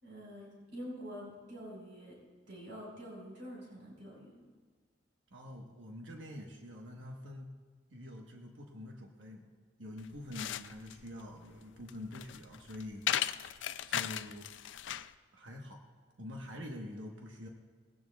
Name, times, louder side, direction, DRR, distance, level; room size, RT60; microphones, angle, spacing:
voice 1, 0.0-2.2 2.5-4.4, equal, 60° right, -3 dB, 4.7 m, -46 dB
voice 2, 5.3-7.5 7.9-9.5 9.8-13.6 13.9-14.5 15.3-15.8 16.2-17.5, left 1 dB, 80° right, 1 dB, 1.2 m, -46 dB
sound 1, 10.0-15.1, left 11 dB, 70° left, 0.4 m, -37 dB
20.0 x 16.0 x 2.3 m, 1.5 s
head